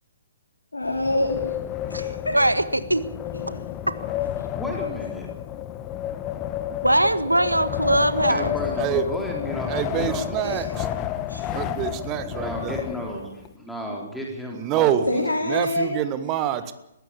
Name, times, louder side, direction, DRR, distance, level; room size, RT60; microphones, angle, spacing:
voice 1, 0.7-1.6 1.8-2.4 3.3-3.6 4.4-4.5 10.4-10.6 11.3-11.4 15.1-15.9, left 1 dB, 75° left, 1 dB, 3.5 m, -27 dB
Wind, 0.8-13.5, left 11 dB, 25° left, 1.2 m, -31 dB
voice 2, 2.3-3.0 6.8-8.5, right 1 dB, 90° right, 12 dB, 1.6 m, -21 dB
voice 3, 4.6-5.3 8.3-11.0 12.2-15.2, equal, ahead, -1 dB, 3.6 m, -34 dB
voice 4, 9.7-10.9 11.5-12.8 14.5-15.1 15.5-16.7, right 11 dB, 25° right, 11 dB, 1.6 m, -26 dB
21.0 x 16.0 x 8.6 m, 0.86 s
figure-of-eight pair, 130°, 0 cm